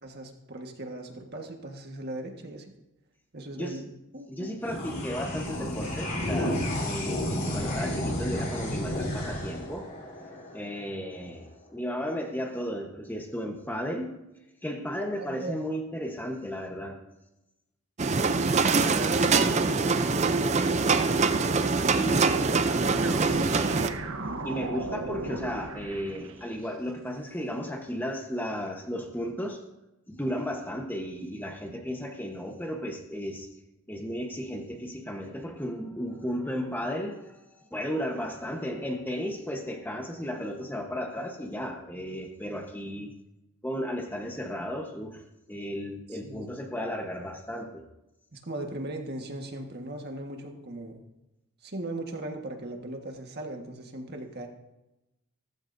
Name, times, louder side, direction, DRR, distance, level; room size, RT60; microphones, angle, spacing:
voice 1, 0.0-2.7 3.3-4.5 15.1-15.6 18.2-24.0 46.1-46.8 48.3-51.0 51.6-54.5, right 1 dB, 50° right, 3 dB, 1.6 m, -38 dB
voice 2, 4.3-9.9 10.5-14.1 14.6-17.0 22.0-22.3 24.4-29.6 30.1-33.5 33.9-43.1 43.6-45.2 45.5-47.8, equal, 10° left, 3 dB, 1.1 m, -34 dB
sound 1, 4.6-11.3, left 1 dB, 40° left, 3.9 m, -32 dB
sound 2, 18.0-23.9, right 4 dB, 30° right, 0.5 m, -24 dB
sound 3, 22.8-26.7, right 2 dB, 65° right, 1.1 m, -36 dB
16.5 x 14.5 x 2.7 m, 0.94 s
head